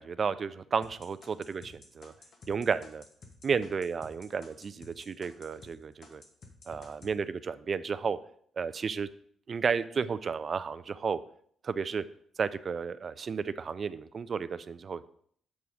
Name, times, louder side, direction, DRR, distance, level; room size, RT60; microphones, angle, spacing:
voice 1, 0.0-2.1 2.5-3.0 3.4-6.2 6.7-8.2 8.6-9.1 9.5-11.2 11.6-12.0 12.4-15.1, right 5 dB, 40° right, 15 dB, 0.3 m, -32 dB
sound 1, 0.8-5.7 6.0-7.1, left 3 dB, 45° left, 1.1 m, -52 dB
7.2 x 4.0 x 4.8 m, 0.62 s
cardioid pair, 130°, 0 cm